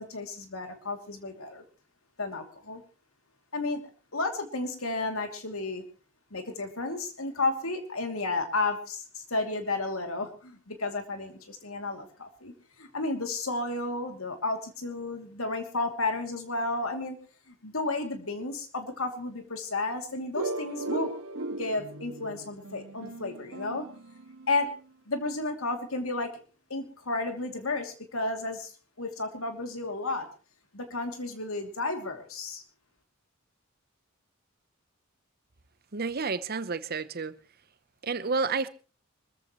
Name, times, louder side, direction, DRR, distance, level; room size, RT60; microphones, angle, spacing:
voice 1, 0.0-1.6 2.2-2.8 3.5-3.8 4.1-5.8 6.3-12.5 12.8-17.2 17.5-21.1 21.5-23.9 24.5-24.7 25.1-26.4 26.7-28.7 29.0-30.3 30.7-32.6, left 2 dB, 80° left, 2.8 m, -32 dB
sound 1, 20.3-24.9, right 2 dB, 85° right, 1.9 m, -37 dB
voice 2, 35.9-37.3 38.0-38.7, right 4 dB, 45° right, 0.9 m, -30 dB
24.5 x 14.5 x 3.1 m
head